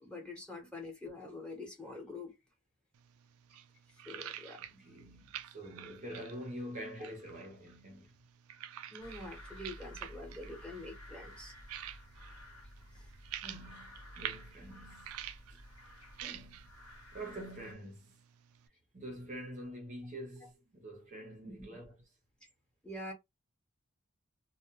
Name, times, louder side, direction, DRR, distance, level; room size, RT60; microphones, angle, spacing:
voice 1, 0.0-2.4 4.0-4.8 8.9-11.5 21.4-21.5 22.8-23.1, left 2 dB, 5° left, 0.9 m, -45 dB
sound 1, 2.9-18.7, right 11 dB, 75° right, 0.3 m, -49 dB
voice 2, 4.6-8.1 13.4-15.1 15.5-15.6 16.2-16.7 17.1-18.1 18.9-22.0, right 1 dB, 35° right, 0.6 m, -46 dB
sound 2, 9.0-17.7, equal, 80° left, 1.0 m, -53 dB
2.1 x 2.1 x 2.9 m
head